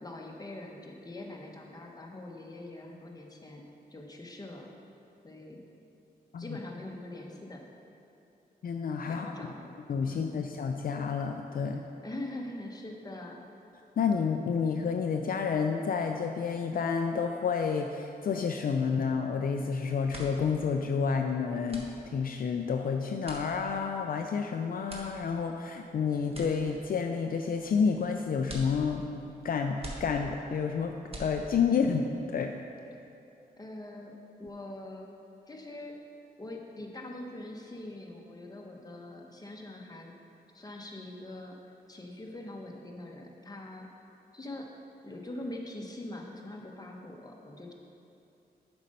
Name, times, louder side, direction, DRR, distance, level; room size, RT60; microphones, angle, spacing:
voice 1, 0.0-3.6 3.9-4.7 5.2-5.6 6.4-7.6 9.1-9.7 10.0-10.4 12.0-13.4 33.6-35.1 35.5-36.0 36.4-40.1 40.5-41.6 41.9-43.9 44.3-44.7 45.0-47.7, left 1 dB, 25° left, 0 dB, 1.1 m, -43 dB
voice 2, 8.6-9.3 9.9-11.8 14.0-29.0 29.4-32.1 32.3-32.5, left 6 dB, 60° left, 4 dB, 0.4 m, -30 dB
sound 1, 20.1-31.9, right 1 dB, 35° right, 1.4 m, -47 dB
7.3 x 5.3 x 5.4 m, 2.7 s
cardioid pair, 65°, 16 cm